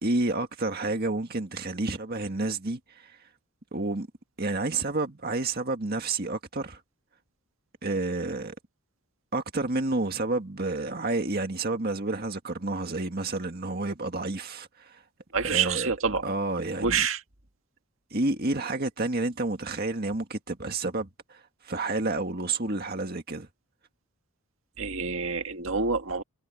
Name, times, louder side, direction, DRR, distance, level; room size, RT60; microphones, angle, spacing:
voice 1, 0.0-3.2 3.7-4.1 4.4-6.8 7.8-8.5 9.3-15.0 15.4-15.9 16.2-17.1 18.1-23.5, right 2 dB, 45° right, 1.9 m, -30 dB
voice 2, 15.3-16.2 16.8-17.2 24.8-26.2, right 5 dB, 65° right, 1.9 m, -27 dB
head